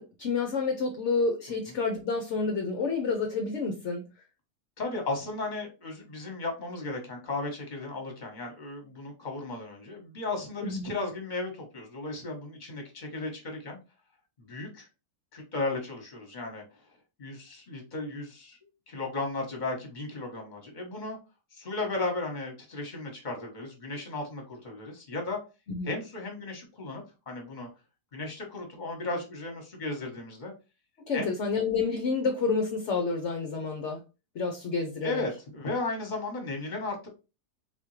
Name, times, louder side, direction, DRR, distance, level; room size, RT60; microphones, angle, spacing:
voice 1, 0.0-4.0 10.6-10.9 25.7-25.9 31.0-34.0 34.3-35.2, left 4 dB, 55° left, 3 dB, 0.9 m, -29 dB
voice 2, 4.8-13.8 14.4-14.9 15.3-16.6 17.2-18.6 18.9-21.2 21.5-25.4 25.8-27.7 28.1-30.5 31.1-31.3 35.0-37.1, left 2 dB, 30° left, 3 dB, 1.3 m, -35 dB
4.1 x 3.6 x 3.2 m, 0.29 s
omnidirectional pair, 1.7 m